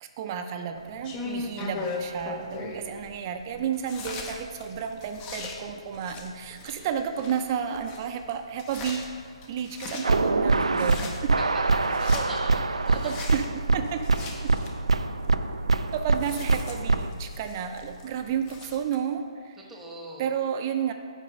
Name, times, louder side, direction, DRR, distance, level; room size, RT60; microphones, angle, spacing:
voice 1, 0.0-9.1 9.5-11.3 12.9-13.5 13.7-14.0 15.9-19.6 20.2-20.9, right 8 dB, 35° right, 7 dB, 0.5 m, -32 dB
sound 1, 0.7-19.0, left 3 dB, 20° left, 0.8 m, -40 dB
sound 2, 10.0-17.1, right 3 dB, 85° right, 0.4 m, -24 dB
voice 2, 11.4-13.3 18.2-18.3 19.7-20.3, right 1 dB, 5° right, -2 dB, 1.1 m, -41 dB
8.4 x 5.2 x 5.4 m, 2.3 s
figure-of-eight pair, 140°, 3 cm